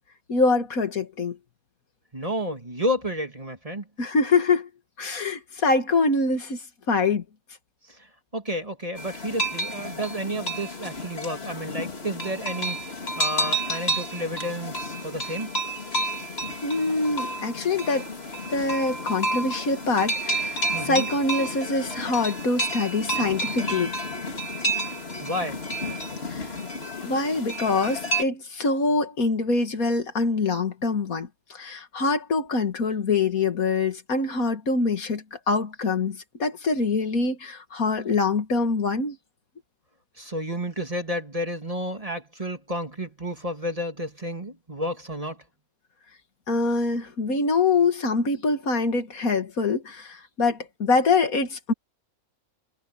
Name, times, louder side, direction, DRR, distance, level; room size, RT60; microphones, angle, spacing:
voice 1, 0.3-1.4 4.0-4.7 5.0-6.6 6.9-7.2 16.6-18.1 18.5-23.9 26.3-26.6 27.0-39.2 46.5-51.7, left 3 dB, 70° left, 2.3 m, -24 dB
voice 2, 2.1-3.9 7.9-8.1 8.3-15.5 20.7-21.1 25.2-25.6 40.2-45.4, equal, 25° right, 2.3 m, -31 dB
sound 1, 9.0-28.2, right 1 dB, 40° left, 3.0 m, -30 dB
omnidirectional pair, 1.6 m